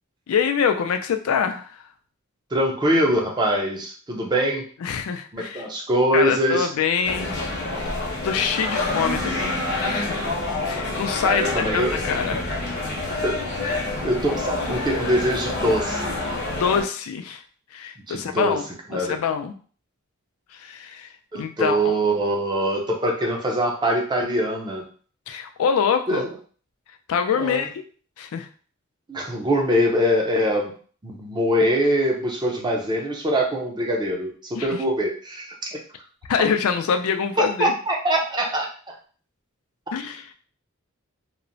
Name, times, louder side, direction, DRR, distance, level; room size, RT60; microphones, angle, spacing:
voice 1, 0.3-1.8 4.8-5.7 6.1-7.3 8.2-10.3 10.6-12.4 16.5-17.4 17.7-18.6 18.9-19.6 20.5-22.0 25.3-26.3 27.1-27.8 28.2-28.5 34.5-34.7 36.3-37.7 39.9-40.3, left 6 dB, 85° left, 7 dB, 0.4 m, -25 dB
voice 2, 2.5-4.6 5.3-6.7 11.2-12.1 13.2-13.4 13.7-16.2 18.1-18.6 18.9-19.2 21.3-24.9 26.1-26.3 27.4-27.7 29.1-30.7 31.0-35.8 37.4-38.9, equal, 20° right, 0 dB, 0.5 m, -23 dB
sound 1, 7.0-16.8, left 2 dB, 50° left, 0.7 m, -27 dB
2.9 x 2.0 x 2.6 m, 0.42 s
head